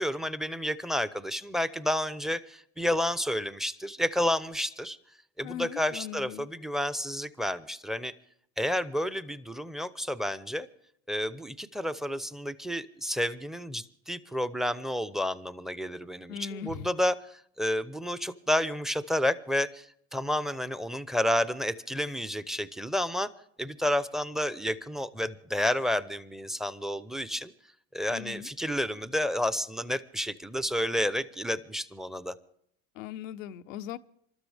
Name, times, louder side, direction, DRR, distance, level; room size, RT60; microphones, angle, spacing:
voice 1, 0.0-5.0 5.4-8.1 8.6-10.7 11.1-23.3 23.6-27.5 27.9-32.3, left 1 dB, ahead, 15 dB, 0.8 m, -30 dB
voice 2, 5.4-6.5 16.3-16.9 28.1-28.5 32.9-34.0, left 10 dB, 85° left, 10 dB, 0.8 m, -39 dB
27.5 x 13.0 x 3.5 m, 0.69 s
hypercardioid pair, 85°, 38 cm